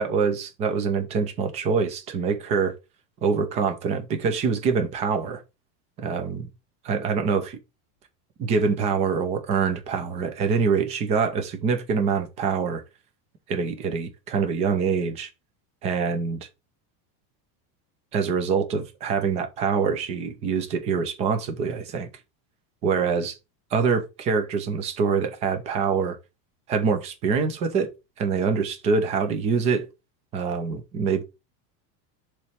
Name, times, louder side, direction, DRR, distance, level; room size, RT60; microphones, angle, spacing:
voice 1, 0.0-2.7 3.2-5.4 6.0-6.5 6.8-7.6 8.4-12.8 13.5-15.3 15.8-16.4 18.1-22.1 22.8-23.3 23.7-26.2 26.7-27.9 28.2-29.9 30.3-31.2, right 5 dB, 15° right, 0.4 m, -25 dB
6.9 x 3.2 x 5.7 m
supercardioid pair, 180°, 47 cm